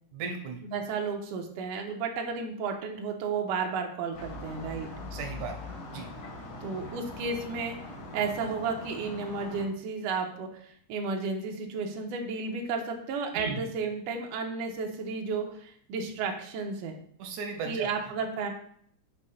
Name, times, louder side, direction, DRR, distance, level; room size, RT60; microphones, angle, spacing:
voice 1, 0.1-0.6 5.1-5.6 5.9-6.1 13.3-13.6 17.2-17.9, right 4 dB, 90° right, 4 dB, 2.2 m, -35 dB
voice 2, 0.6-4.9 6.6-7.7 8.1-17.0 17.7-18.5, right 4 dB, 70° right, 2 dB, 1.8 m, -33 dB
sound 1, 4.1-9.6, left 2 dB, 70° left, 3.3 m, -42 dB
6.7 x 2.8 x 5.5 m, 0.63 s
omnidirectional pair, 3.4 m